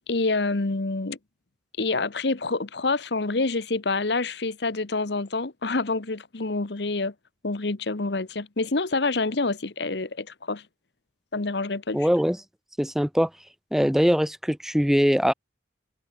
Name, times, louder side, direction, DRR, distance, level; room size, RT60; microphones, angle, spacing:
voice 1, 0.1-1.2 1.8-7.1 7.4-10.6 11.3-12.1, left 3 dB, 65° left, 1.1 m, -27 dB
voice 2, 11.9-12.4 12.8-13.3 13.7-15.3, equal, ahead, 0.8 m, -22 dB
head